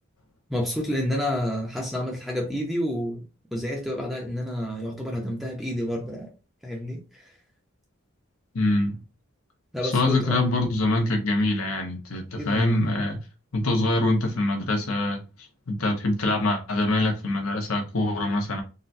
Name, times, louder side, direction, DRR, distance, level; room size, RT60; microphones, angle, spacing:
voice 1, 0.5-3.2 3.5-6.3 6.6-7.3 9.7-10.3 12.3-12.9, equal, ahead, 0.6 m, -29 dB
voice 2, 8.5-9.0 9.8-13.2 13.5-18.6, left 2 dB, 75° left, 0.9 m, -24 dB
3.8 x 2.2 x 2.6 m
head